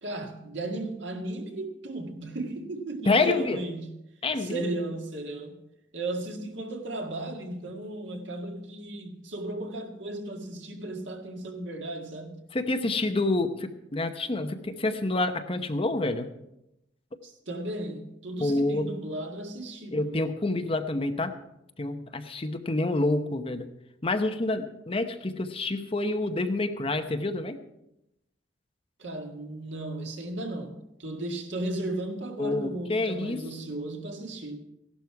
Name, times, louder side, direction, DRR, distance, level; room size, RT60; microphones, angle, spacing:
voice 1, 0.0-3.9 4.4-5.6 5.9-12.4 17.2-20.3 29.0-34.6, right 1 dB, 75° right, 1.8 m, -35 dB
voice 2, 3.1-3.6 4.2-4.6 12.5-16.3 18.4-18.9 19.9-21.3 21.8-23.7 24.0-27.6 32.4-33.4, left 2 dB, 30° left, 0.8 m, -28 dB
16.0 x 11.5 x 4.7 m
head